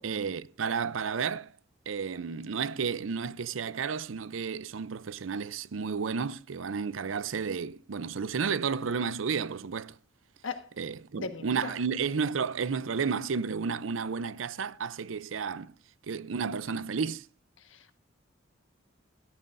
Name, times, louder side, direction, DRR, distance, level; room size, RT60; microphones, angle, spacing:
voice 1, 0.0-1.5 1.9-10.0 10.8-15.8 16.1-17.3, right 5 dB, 80° right, 0.5 m, -32 dB
voice 2, 11.2-11.7 17.6-18.0, left 4 dB, 75° left, 1.4 m, -38 dB
17.0 x 13.5 x 2.6 m
head